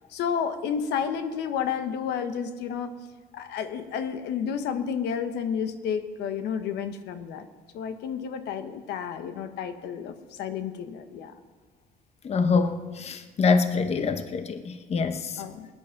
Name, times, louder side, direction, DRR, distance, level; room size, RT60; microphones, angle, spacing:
voice 1, 0.1-2.9 3.3-7.5 7.7-11.3 15.4-15.7, left 7 dB, 80° left, 9 dB, 1.2 m, -31 dB
voice 2, 12.2-15.4, left 4 dB, 40° left, 9 dB, 1.0 m, -25 dB
19.0 x 9.5 x 5.8 m, 1.4 s
cardioid pair, 110°, 17 cm